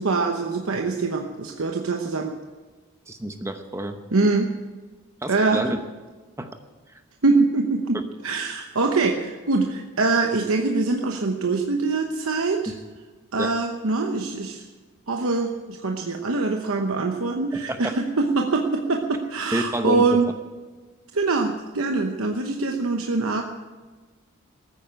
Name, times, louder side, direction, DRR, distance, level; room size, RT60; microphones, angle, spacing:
voice 1, 0.0-2.3 4.1-4.5 5.3-5.8 7.2-12.7 13.3-14.7 15.1-20.2 21.1-23.4, right 3 dB, 75° right, 3 dB, 1.0 m, -24 dB
voice 2, 3.1-4.0 5.2-5.8 6.4-6.5 6.9-7.0 13.4-13.5 17.5-17.9 19.5-20.1, right 1 dB, 15° right, 7 dB, 0.8 m, -29 dB
14.5 x 9.4 x 8.9 m, 1.3 s
head